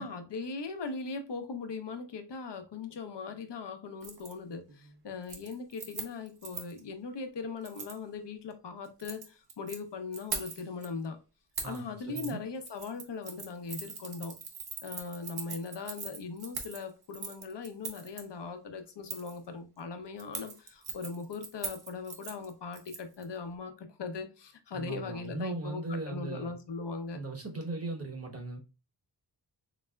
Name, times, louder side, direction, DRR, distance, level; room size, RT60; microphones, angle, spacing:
voice 1, 0.0-11.2 11.6-14.3 14.8-27.2, left 4 dB, 80° left, 0.8 m, -39 dB
Keys jangling, 4.0-4.3 4.7-5.0 5.2-6.8 7.6-8.0 8.8-9.8 10.1-10.9 11.6-11.8 12.2-12.3 12.6-18.2 19.1-19.4 20.2-23.2 23.5-23.6, right 5 dB, 65° right, 0.8 m, -41 dB
voice 2, 11.6-12.4 24.7-26.5 27.1-28.6, right 3 dB, 35° right, 1.1 m, -38 dB
4.0 x 3.3 x 2.2 m
wide cardioid pair, 100°, 41 cm